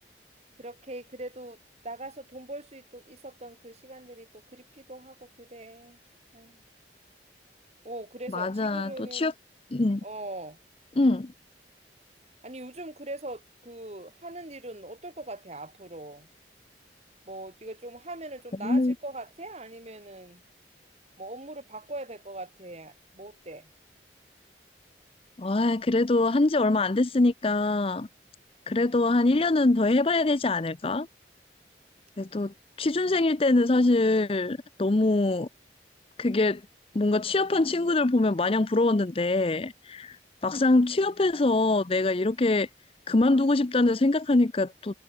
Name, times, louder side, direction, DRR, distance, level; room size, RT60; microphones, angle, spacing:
voice 1, 0.6-1.6 1.8-6.0 6.3-6.6 7.8-9.3 10.0-10.6 12.4-16.3 17.3-20.4 21.2-23.7, right 2 dB, 35° right, 3.6 m, -41 dB
voice 2, 8.3-9.3 9.7-10.0 11.0-11.3 18.6-18.9 25.4-28.1 28.7-31.1 32.2-35.5 36.2-36.6 36.9-40.2 40.4-42.7 43.1-44.9, left 2 dB, 30° left, 0.6 m, -24 dB
head